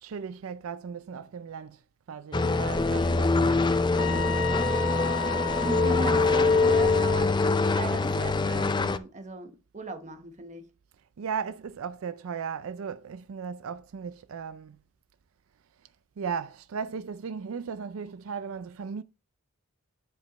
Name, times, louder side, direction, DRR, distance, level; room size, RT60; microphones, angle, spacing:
voice 1, 0.0-1.8 2.1-4.5 11.2-14.8 16.2-19.0, right 6 dB, 80° right, 0.4 m, -36 dB
sound 1, 2.3-9.0, left 3 dB, 20° left, 0.5 m, -24 dB
sound 2, 4.0-7.2, left 4 dB, 70° left, 0.8 m, -33 dB
voice 2, 5.6-10.7, right 2 dB, 35° right, 1.1 m, -38 dB
10.0 x 5.2 x 3.0 m
head